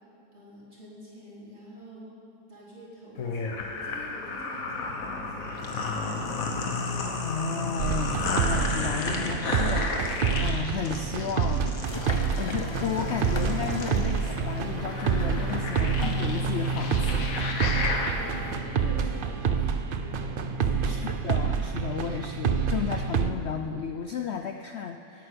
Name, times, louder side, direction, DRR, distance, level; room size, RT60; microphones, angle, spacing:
voice 1, 0.3-2.1 2.5-6.4 17.7-18.4 18.7-21.0, equal, 40° right, -7 dB, 4.0 m, -46 dB
sound 1, 3.2-18.1, left 3 dB, 55° left, 1.6 m, -33 dB
voice 2, 7.2-11.8 12.4-17.2 17.9-18.0 20.8-25.3, left 7 dB, 85° left, 6 dB, 0.5 m, -33 dB
sound 2, 7.8-23.3, right 6 dB, 70° right, 0.5 m, -28 dB
sound 3, 11.8-18.6, left 2 dB, 25° left, 0.6 m, -38 dB
17.5 x 8.8 x 6.7 m, 2.8 s
omnidirectional pair, 1.8 m